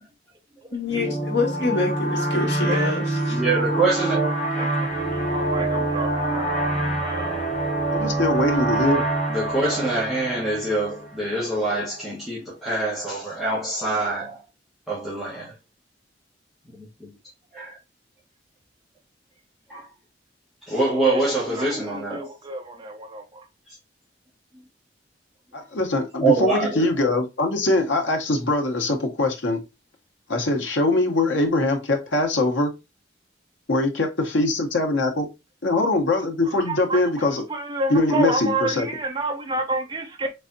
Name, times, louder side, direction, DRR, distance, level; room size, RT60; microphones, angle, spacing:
voice 1, 0.7-3.3, left 3 dB, 65° left, 1.4 m, -26 dB
sound 1, 0.9-11.3, right 2 dB, 40° left, 2.2 m, -25 dB
voice 2, 3.3-4.3 9.3-14.4 14.9-15.5 16.7-17.1 17.5-17.8 19.7-19.9 20.7-22.3 23.7-23.8 24.5-24.6 26.2-26.9, right 2 dB, ahead, 1.2 m, -25 dB
voice 3, 4.5-6.6 7.0-7.4 21.0-21.2 21.5-23.5 36.4-40.3, right 2 dB, 25° right, 0.5 m, -29 dB
voice 4, 7.9-9.0 25.5-29.6 30.3-32.7 33.7-35.3 35.6-37.4 37.9-38.9, left 2 dB, 90° left, 1.0 m, -22 dB
4.0 x 3.4 x 2.6 m
head